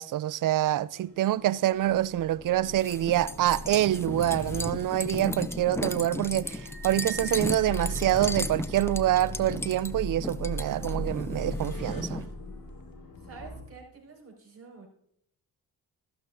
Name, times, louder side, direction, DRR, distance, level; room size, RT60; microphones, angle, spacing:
voice 1, 0.0-12.2, right 13 dB, 55° right, 0.4 m, -26 dB
sound 1, 0.9-13.6, left 1 dB, 60° left, 2.3 m, -39 dB
sound 2, 2.8-12.3, left 1 dB, 5° left, 0.5 m, -35 dB
sound 3, 6.5-9.2, right 3 dB, 35° left, 3.4 m, -46 dB
voice 2, 13.2-14.9, right 5 dB, 35° right, 5.2 m, -48 dB
14.0 x 12.0 x 2.6 m
cardioid pair, 80°, 39 cm